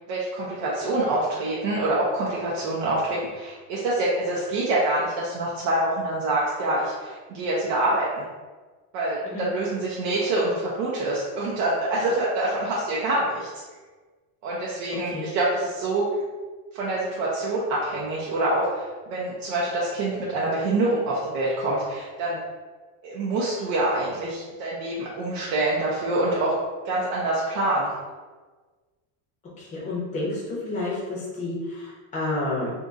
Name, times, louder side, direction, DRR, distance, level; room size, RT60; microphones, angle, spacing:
voice 1, 0.1-8.2 8.9-13.5 14.4-16.1 16.7-22.4 23.0-26.5 26.8-27.9, right 2 dB, 60° right, -5 dB, 0.8 m, -26 dB
voice 2, 29.6-32.7, left 2 dB, 15° left, -5 dB, 0.8 m, -30 dB
2.7 x 2.6 x 3.5 m, 1.3 s
cardioid pair, 160°, 49 cm